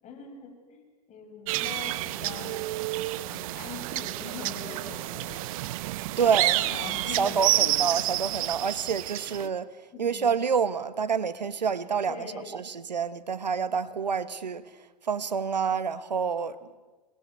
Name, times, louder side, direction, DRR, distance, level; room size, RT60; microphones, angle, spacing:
voice 1, 0.0-2.6 3.2-5.6 6.1-7.8 9.9-10.3 12.1-12.4, left 6 dB, 35° left, 6.9 m, -43 dB
sound 1, 1.5-9.5, right 17 dB, 55° right, 0.9 m, -29 dB
voice 2, 6.2-6.6 7.2-9.7 10.0-12.3 12.5-14.6 15.0-16.8, right 6 dB, 90° right, 1.2 m, -28 dB
27.0 x 21.5 x 9.5 m
hypercardioid pair, 100°, 21 cm